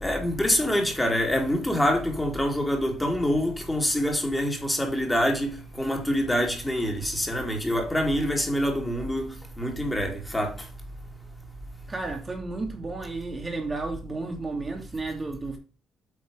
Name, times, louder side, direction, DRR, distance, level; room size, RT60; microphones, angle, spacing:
voice 1, 0.0-9.3 9.6-10.5, equal, 10° left, 2.8 m, -25 dB
voice 2, 11.9-15.6, right 3 dB, 25° right, 2.4 m, -33 dB
8.6 x 4.1 x 4.9 m
supercardioid pair, 70°, 0 cm